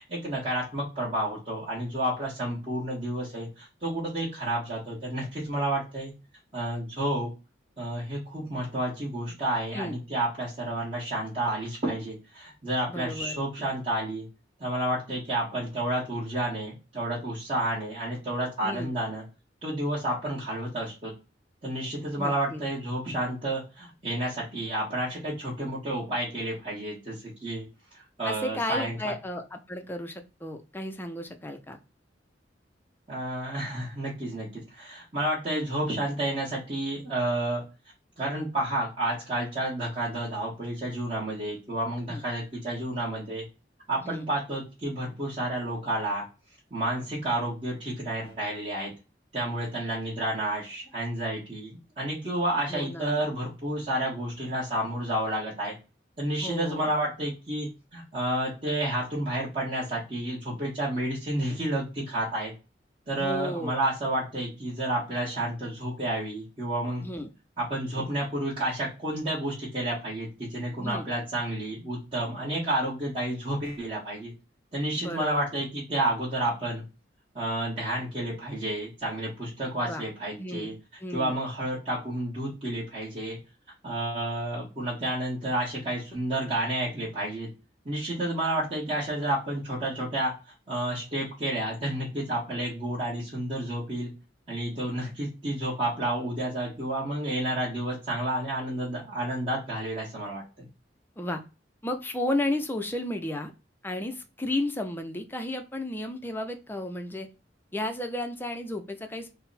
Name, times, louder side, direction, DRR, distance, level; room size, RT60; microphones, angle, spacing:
voice 1, 0.0-6.1 6.5-7.3 7.8-14.3 14.6-19.2 19.6-21.1 21.6-27.6 28.2-29.1 33.1-37.6 38.2-43.4 43.9-46.2 46.7-48.9 49.3-55.7 56.2-62.5 63.1-67.0 67.6-74.3 74.7-76.8 77.3-80.7 81.1-83.4 83.8-87.5 87.8-90.3 90.7-94.1 94.5-100.7, right 1 dB, 30° right, -9 dB, 1.3 m, -30 dB
voice 2, 12.9-13.4 18.6-18.9 22.2-22.6 28.3-31.8 42.1-42.2 44.0-44.2 52.7-53.2 56.4-56.9 63.2-63.7 67.0-67.3 70.8-71.0 75.0-75.5 79.8-80.0 80.4-80.7 81.0-81.3 101.2-101.4 101.8-103.5 103.8-107.3 107.7-109.3, left 1 dB, 10° left, 5 dB, 0.4 m, -33 dB
3.9 x 2.1 x 4.0 m, 0.30 s
head